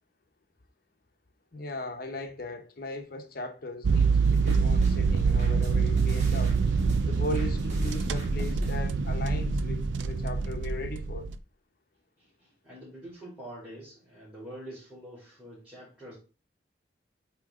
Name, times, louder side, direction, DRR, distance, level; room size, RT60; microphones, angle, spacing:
voice 1, 1.5-6.6 7.0-11.3, left 2 dB, 55° left, 0.9 m, -38 dB
sound 1, 3.8-11.4, right 5 dB, 85° right, 0.4 m, -25 dB
sound 2, 3.9-8.8, equal, 40° right, 2.4 m, -40 dB
voice 2, 12.2-16.2, right 1 dB, 5° right, 2.7 m, -45 dB
8.4 x 3.1 x 3.7 m
head